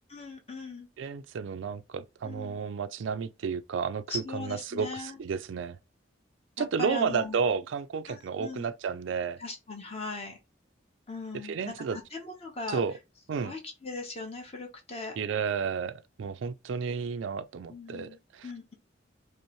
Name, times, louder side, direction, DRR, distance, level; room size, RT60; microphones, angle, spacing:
voice 1, 0.1-0.9 2.2-2.6 4.1-5.2 6.6-7.4 8.1-8.7 9.4-10.4 11.1-12.8 13.4-15.2 17.7-18.7, left 3 dB, 30° left, 1.1 m, -39 dB
voice 2, 1.0-5.8 6.6-9.4 11.4-12.0 12.7-12.9 13.3-13.5 15.2-18.5, right 6 dB, 80° right, 0.4 m, -32 dB
5.2 x 2.0 x 3.0 m
head